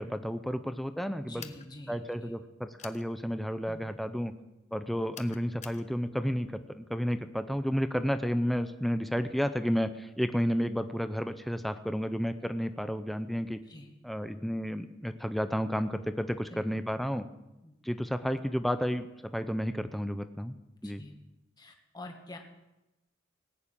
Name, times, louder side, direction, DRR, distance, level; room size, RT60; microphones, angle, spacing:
voice 1, 0.0-1.4 1.9-4.3 4.7-13.6 14.0-17.2 17.8-19.1 19.3-20.6 20.8-21.0, equal, ahead, 9 dB, 0.6 m, -31 dB
voice 2, 1.3-2.3 3.7-3.9 13.7-13.9 16.5-16.6 17.6-17.8 20.8-21.2 21.6-22.4, left 1 dB, 20° left, 2 dB, 1.9 m, -47 dB
sound 1, 1.4-1.7 2.8-3.0 5.1-5.8, left 8 dB, 35° left, 0.9 m, -46 dB
19.0 x 7.1 x 8.7 m, 0.97 s
head